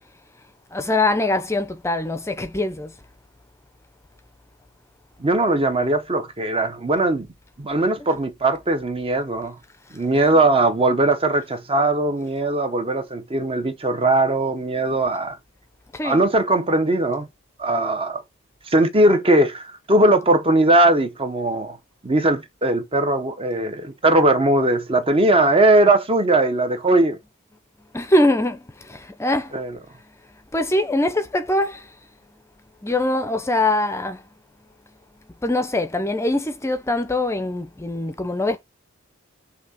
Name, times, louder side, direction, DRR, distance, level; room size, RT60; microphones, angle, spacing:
voice 1, 0.7-3.0 10.1-10.3 15.9-16.2 27.9-29.6 30.0-30.1 30.5-32.0 32.8-34.3 35.4-38.6, left 1 dB, 15° left, 0.6 m, -23 dB
voice 2, 5.2-7.3 7.6-9.6 9.9-15.4 16.0-17.3 17.6-18.2 18.7-21.8 22.0-27.2 29.5-29.7, right 2 dB, 25° right, 0.8 m, -19 dB
6.1 x 2.8 x 5.6 m
head